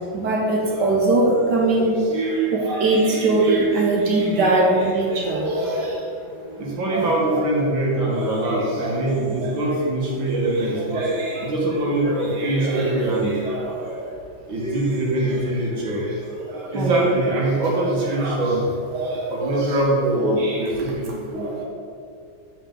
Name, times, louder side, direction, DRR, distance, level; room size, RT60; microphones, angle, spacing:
voice 1, 0.1-6.0 6.9-7.6 8.0-9.0 9.4-9.5 10.5-11.4 11.8-12.9 13.2-13.9 14.6-15.3 16.5-18.4 18.9-19.7 20.2-20.6 21.3-21.6, right 2 dB, 65° right, -1 dB, 1.4 m, -23 dB
voice 2, 6.6-11.0 11.4-13.3 14.5-16.0 16.7-18.6 19.3-21.5, right 1 dB, 80° right, -3 dB, 2.2 m, -23 dB
8.5 x 5.4 x 3.7 m, 2.3 s
omnidirectional pair, 2.1 m